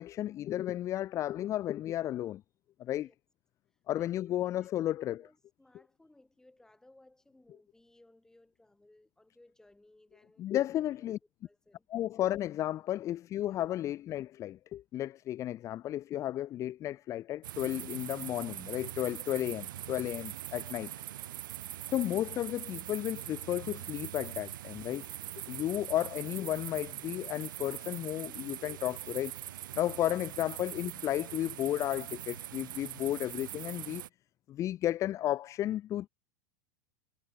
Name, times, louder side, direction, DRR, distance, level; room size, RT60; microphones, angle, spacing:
voice 1, 0.0-2.4 2.8-3.1 3.9-5.2 10.4-11.2 11.9-20.9 21.9-25.0 25.5-29.3 29.7-34.0 34.5-36.1, left 13 dB, 30° left, 0.4 m, -33 dB
voice 2, 4.0-4.7 5.0-11.1 11.4-11.9, left 2 dB, 5° left, 5.9 m, -62 dB
sound 1, 17.4-34.1, right 13 dB, 80° right, 1.4 m, -42 dB
supercardioid pair, 120°, 11 cm